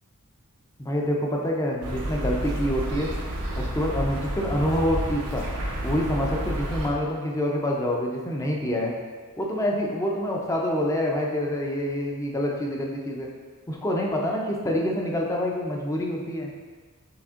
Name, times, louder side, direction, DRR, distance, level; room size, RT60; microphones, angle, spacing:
voice 1, 0.8-3.1 3.5-5.5 5.8-8.9 9.4-13.3 13.7-16.5, equal, 15° left, -1 dB, 0.5 m, -26 dB
sound 1, 1.8-6.9, right 1 dB, 90° right, 0.8 m, -30 dB
5.9 x 3.5 x 2.5 m, 1.5 s
head